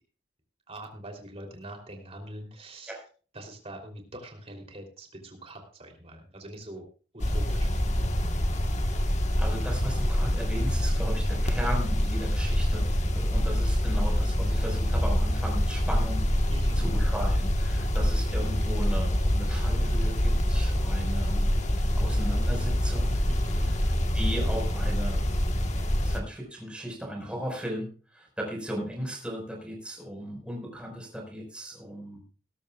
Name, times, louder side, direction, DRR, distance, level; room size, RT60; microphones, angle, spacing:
voice 1, 0.7-3.0 3.3-6.9 7.3-7.7 16.5-16.9 23.3-23.7, right 1 dB, 35° right, 3 dB, 3.4 m, -43 dB
sound 1, 7.2-26.2, equal, 40° left, 1.5 m, -26 dB
voice 2, 9.4-16.3 16.8-21.7 22.0-23.1 23.6-23.7 24.1-25.2 26.0-32.2, equal, 5° right, 0 dB, 5.0 m, -36 dB
19.5 x 12.5 x 2.4 m, 0.38 s
head